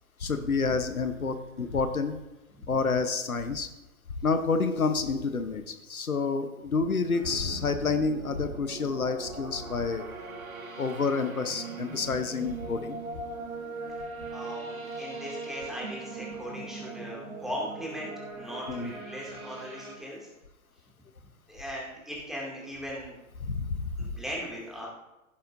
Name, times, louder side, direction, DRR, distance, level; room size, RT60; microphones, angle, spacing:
voice 1, 0.2-2.2 2.7-3.7 4.2-10.0 10.8-13.0 18.7-18.9 23.4-24.1, left 4 dB, 80° left, 9 dB, 1.0 m, -29 dB
sound 1, 7.1-20.0, right 3 dB, 75° right, 2.0 m, -40 dB
voice 2, 14.3-20.3 21.5-23.1 24.0-24.9, equal, ahead, -4 dB, 2.3 m, -38 dB
16.5 x 7.9 x 2.6 m, 0.99 s
figure-of-eight pair, 115°, 42 cm